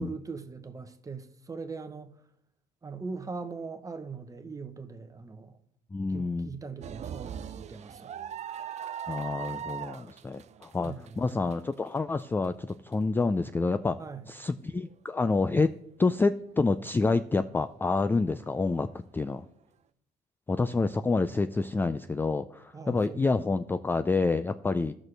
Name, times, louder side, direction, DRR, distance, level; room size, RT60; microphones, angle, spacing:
voice 1, 0.0-2.1 2.8-5.6 6.1-8.1 10.8-11.1 14.0-14.3 22.7-23.3, right 4 dB, 20° right, 0.9 m, -40 dB
voice 2, 5.9-6.5 9.1-14.0 14.3-15.7 16.0-18.9 19.1-19.4 20.5-24.9, left 3 dB, 10° left, 0.3 m, -28 dB
sound 1, 6.8-12.9 13.4-13.5 14.7-14.9, right 8 dB, 40° right, 0.5 m, -40 dB
14.0 x 6.2 x 3.3 m
cardioid pair, 110°, 17 cm